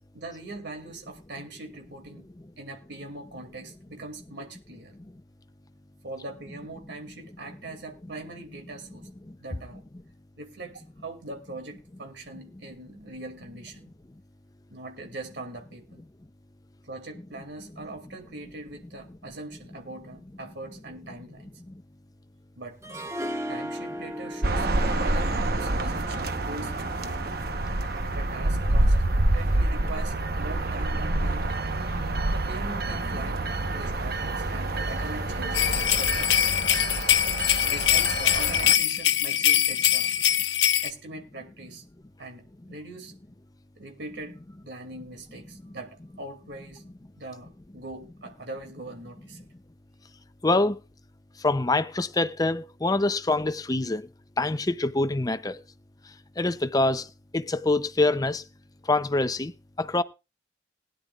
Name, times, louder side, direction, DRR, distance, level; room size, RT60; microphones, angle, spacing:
voice 1, 0.1-2.3 2.6-5.0 6.0-9.1 9.4-9.8 10.4-13.9 14.7-16.0 16.8-21.5 22.6-22.8 23.5-27.2 28.0-29.0 29.3-31.6 32.3-33.5 33.7-36.8 37.3-40.3 40.8-41.8 42.2-43.2 43.8-44.4 44.6-46.9 47.2-49.5, right 2 dB, 75° right, 2.5 m, -41 dB
Harp, 22.8-27.9, equal, 15° right, 1.7 m, -38 dB
sound 1, 24.4-38.7, right 2 dB, 55° right, 1.0 m, -27 dB
sound 2, 35.5-40.9, left 11 dB, 85° left, 0.9 m, -23 dB
voice 2, 50.4-50.8 51.4-54.1 54.4-55.6 56.4-57.1 57.3-58.4 58.8-59.5 59.8-60.0, left 2 dB, 20° left, 0.6 m, -25 dB
20.5 x 10.5 x 2.4 m
head